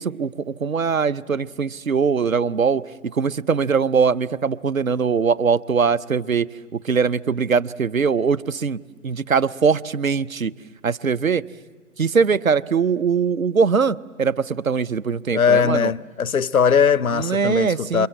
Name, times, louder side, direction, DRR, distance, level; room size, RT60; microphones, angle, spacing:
voice 1, 0.0-8.8 9.0-10.5 10.8-11.4 12.0-15.9 17.1-18.1, right 5 dB, 75° right, 1.0 m, -21 dB
voice 2, 15.3-18.1, left 6 dB, 85° left, 0.8 m, -19 dB
28.5 x 26.5 x 7.8 m
figure-of-eight pair, 135°, 41 cm